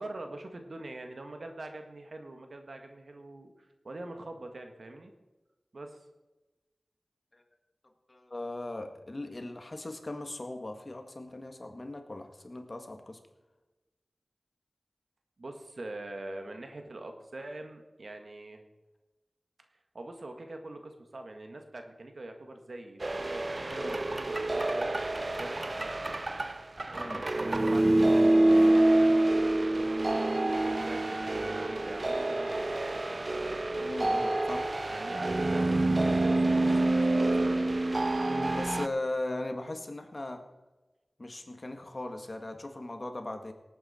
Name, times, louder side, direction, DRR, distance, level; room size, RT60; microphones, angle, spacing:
voice 1, 0.0-5.1 5.7-6.0 15.4-18.6 19.9-26.0 26.9-29.4 29.7-33.0 33.3-33.9 34.9-37.6, right 2 dB, 70° right, 5 dB, 1.7 m, -44 dB
voice 2, 8.1-13.2 23.7-24.0 26.9-27.2 33.8-34.7 38.3-40.4 41.2-43.5, left 2 dB, 45° left, 6 dB, 1.7 m, -38 dB
sound 1, 23.0-38.9, right 2 dB, 50° right, 0.6 m, -27 dB
18.0 x 9.1 x 4.4 m, 1.1 s
cardioid pair, 45°, 0 cm